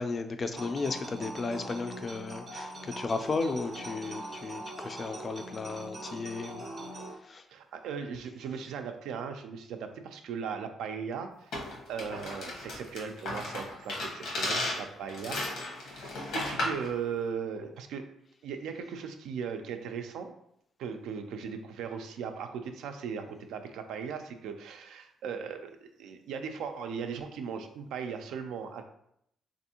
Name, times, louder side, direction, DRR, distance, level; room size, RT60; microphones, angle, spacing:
voice 1, 0.0-6.7 7.2-7.4, left 3 dB, 35° left, 8 dB, 0.3 m, -34 dB
sound 1, 0.5-7.1, right 1 dB, 40° right, 0.6 m, -42 dB
voice 2, 7.5-11.6 11.9-15.4 15.8-18.1 18.4-20.3 20.8-28.8, right 6 dB, 85° right, 6 dB, 0.4 m, -38 dB
sound 2, 11.5-16.9, left 1 dB, 80° left, 0.9 m, -35 dB
3.4 x 2.6 x 2.8 m, 0.73 s
cardioid pair, 90°, 0 cm